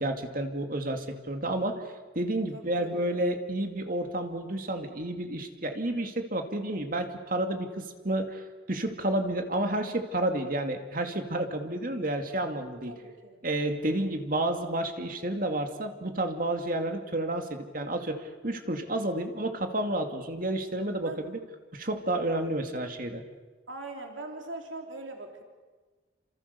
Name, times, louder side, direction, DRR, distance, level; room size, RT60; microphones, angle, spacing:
voice 1, 0.0-1.8 2.1-12.9 13.4-21.4 21.7-23.2, right 1 dB, 45° right, 5 dB, 2.4 m, -30 dB
voice 2, 2.5-3.2 12.9-13.4 21.0-21.2 23.7-25.4, right 2 dB, 85° right, 3 dB, 3.2 m, -41 dB
29.5 x 26.5 x 7.0 m, 1.3 s
head